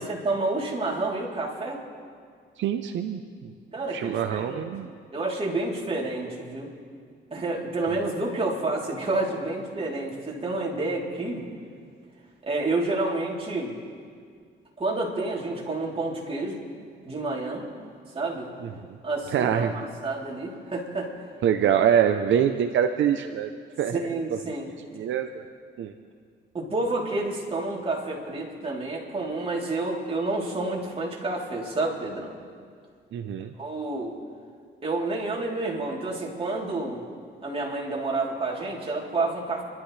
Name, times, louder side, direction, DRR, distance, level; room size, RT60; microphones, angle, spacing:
voice 1, 0.0-1.8 3.7-6.7 7.3-11.4 12.4-13.7 14.8-16.6 17.0-17.6 18.1-18.5 19.0-21.1 23.9-24.7 26.5-32.3 33.6-34.2 34.8-37.0 37.4-39.6, right 2 dB, 30° right, -3 dB, 3.5 m, -29 dB
voice 2, 2.6-3.5 3.9-4.9 18.6-18.9 19.3-19.8 21.4-23.5 23.8-24.4 24.9-25.4 25.8-25.9 33.1-33.5, right 9 dB, 70° right, 6 dB, 0.8 m, -25 dB
28.5 x 12.5 x 3.3 m, 2.1 s
cardioid pair, 90°, 20 cm